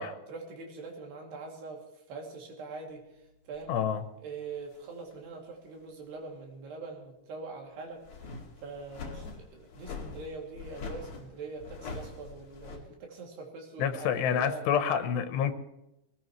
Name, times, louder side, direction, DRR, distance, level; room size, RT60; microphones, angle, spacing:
voice 1, 0.0-3.8 4.2-8.3 8.6-14.6, right 4 dB, 75° right, 0 dB, 4.7 m, -43 dB
sound 1, 3.5-3.7 4.6-5.1 5.7-5.8 7.9-12.8, left 4 dB, 45° left, 3.1 m, -43 dB
voice 2, 3.7-4.0 13.8-15.5, left 8 dB, 90° left, 9 dB, 3.2 m, -28 dB
21.0 x 19.0 x 3.2 m, 0.90 s
omnidirectional pair, 4.7 m